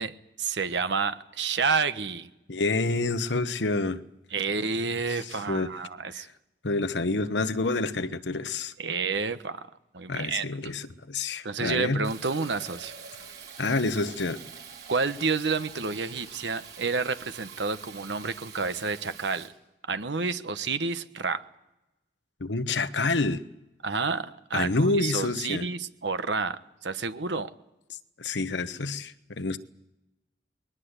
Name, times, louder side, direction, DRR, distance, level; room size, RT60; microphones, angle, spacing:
voice 1, 0.0-2.3 4.3-6.3 8.8-9.7 9.9-10.5 11.4-12.9 14.9-19.5 19.9-21.4 23.8-27.5, right 4 dB, 85° right, 1.2 m, -29 dB
voice 2, 2.5-4.0 5.1-5.7 6.1-6.3 6.6-8.7 10.1-12.1 13.6-14.4 22.4-23.4 24.5-25.6 28.2-29.6, left 3 dB, 90° left, 1.1 m, -28 dB
Fill (with liquid), 12.0-19.5, right 7 dB, 65° right, 4.2 m, -45 dB
21.5 x 19.0 x 8.2 m
head